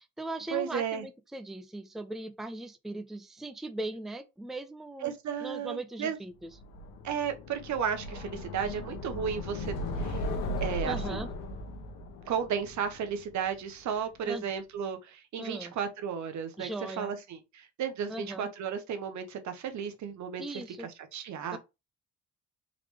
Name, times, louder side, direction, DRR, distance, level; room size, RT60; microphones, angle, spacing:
voice 1, 0.0-5.1 5.4-6.5 10.8-11.3 14.3-14.4 15.4-15.7 16.6-17.1 18.1-18.5 20.4-20.9 21.5-21.6, right 2 dB, ahead, 0.5 m, -39 dB
voice 2, 0.5-1.1 5.0-6.2 7.0-10.3 10.6-11.3 12.3-21.6, right 7 dB, 70° right, 0.9 m, -34 dB
sound 1, 6.5-13.6, left 1 dB, 90° left, 0.9 m, -37 dB
3.8 x 3.2 x 3.2 m
cardioid pair, 90°, 30 cm